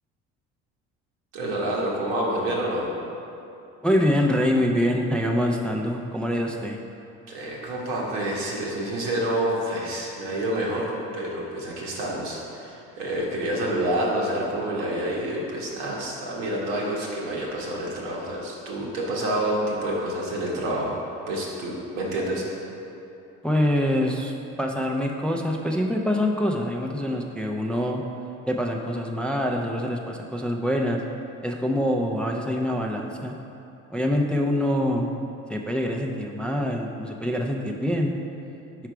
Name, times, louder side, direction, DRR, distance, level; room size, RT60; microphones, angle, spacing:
voice 1, 1.3-2.9 7.3-22.4, right 1 dB, 90° right, -3 dB, 1.3 m, -28 dB
voice 2, 3.8-6.8 23.4-28.0 28.5-31.0 31.4-33.3 33.9-35.1 35.5-38.1, equal, 5° left, 0 dB, 0.4 m, -25 dB
4.9 x 4.6 x 4.6 m, 2.8 s
supercardioid pair, 85°, 30 cm